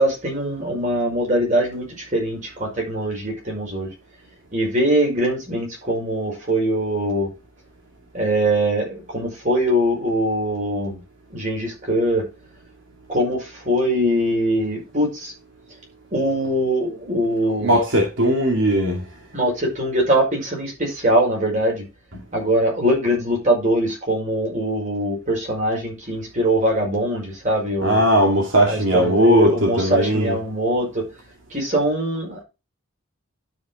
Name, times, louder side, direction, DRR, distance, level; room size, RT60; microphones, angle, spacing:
voice 1, 0.0-3.9 4.5-7.3 8.1-11.0 11.3-12.2 13.1-15.3 16.1-17.8 19.3-21.8 22.3-28.0 28.6-31.0 31.5-32.4, right 1 dB, 35° right, 5.3 m, -22 dB
voice 2, 17.5-19.0 22.1-22.2 27.8-30.4, equal, 70° right, 2.4 m, -19 dB
12.0 x 5.4 x 3.9 m
head